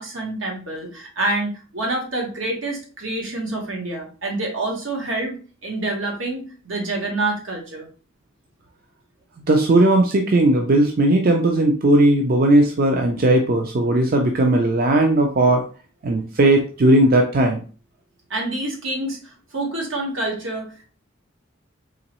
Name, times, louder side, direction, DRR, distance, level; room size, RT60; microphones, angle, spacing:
voice 1, 0.0-7.9 18.3-20.9, right 2 dB, 80° right, 0 dB, 1.2 m, -27 dB
voice 2, 9.5-15.6 16.0-17.6, right 1 dB, 45° right, 3 dB, 0.4 m, -17 dB
3.8 x 3.0 x 3.0 m, 0.38 s
head